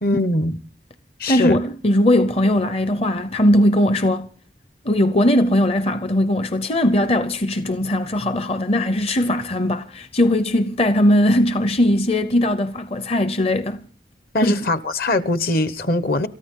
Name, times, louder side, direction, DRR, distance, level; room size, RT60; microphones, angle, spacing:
voice 1, 0.0-0.6 1.2-1.6 14.3-16.3, left 2 dB, 55° left, 1.0 m, -21 dB
voice 2, 1.3-4.3 4.8-13.8 14.4-14.5, left 1 dB, 35° left, 0.7 m, -19 dB
27.5 x 14.0 x 3.7 m
head